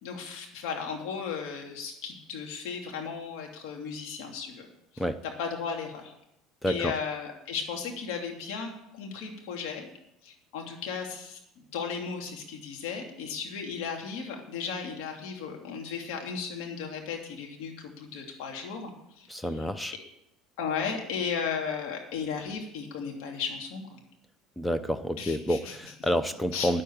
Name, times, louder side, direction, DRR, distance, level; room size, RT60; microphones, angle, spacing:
voice 1, 0.0-4.7 4.9-6.1 6.7-9.9 10.2-11.4 11.7-19.5 20.6-24.0 25.2-25.9 26.5-26.7, left 6 dB, 75° left, 1 dB, 2.8 m, -35 dB
voice 2, 6.6-6.9 19.3-19.9 24.6-26.8, equal, 10° left, 11 dB, 0.7 m, -29 dB
9.7 x 7.7 x 8.7 m, 0.82 s
supercardioid pair, 100°, 0 cm